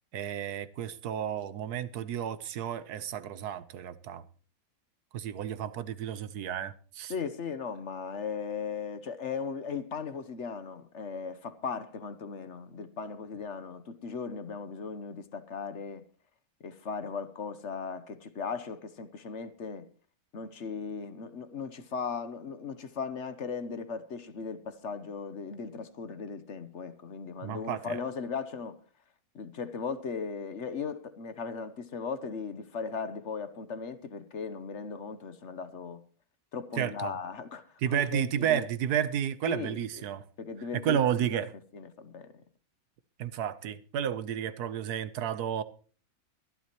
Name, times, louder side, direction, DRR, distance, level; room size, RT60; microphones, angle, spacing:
voice 1, 0.1-4.2 5.1-7.1 27.4-28.0 36.8-37.1 37.8-40.2 40.7-41.5 43.2-45.6, right 9 dB, 85° right, 1.4 m, -32 dB
voice 2, 7.1-16.0 16.6-19.9 20.3-28.8 29.3-36.0 36.5-38.6 39.5-40.0 40.4-41.3 41.7-42.4, left 5 dB, 55° left, 1.2 m, -37 dB
23.0 x 11.5 x 3.0 m
omnidirectional pair, 1.6 m